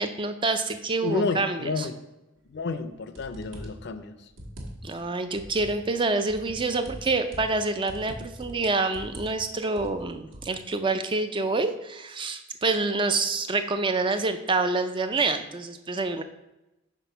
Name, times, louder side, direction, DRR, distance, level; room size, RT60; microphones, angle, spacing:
voice 1, 0.0-1.9 4.8-16.2, right 3 dB, 25° right, 8 dB, 0.3 m, -27 dB
voice 2, 1.0-2.0 2.5-4.1, left 3 dB, 50° left, 10 dB, 0.5 m, -30 dB
sound 1, 2.7-2.8 3.2-3.9 4.3-5.0 5.4-5.8 6.3-7.6 7.9-8.6 8.9-9.4 9.6-10.5, equal, 65° right, 1.4 m, -42 dB
6.0 x 4.1 x 5.5 m, 0.97 s
head